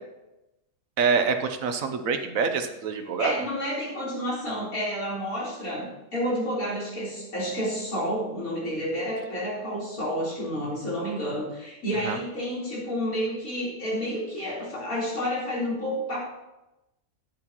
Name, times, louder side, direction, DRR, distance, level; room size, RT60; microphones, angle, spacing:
voice 1, 1.0-3.4 12.0-12.2, right 5 dB, 75° right, 7 dB, 1.2 m, -26 dB
voice 2, 3.2-16.2, equal, 85° left, -7 dB, 4.5 m, -30 dB
12.0 x 9.7 x 3.0 m, 0.99 s
omnidirectional pair, 1.5 m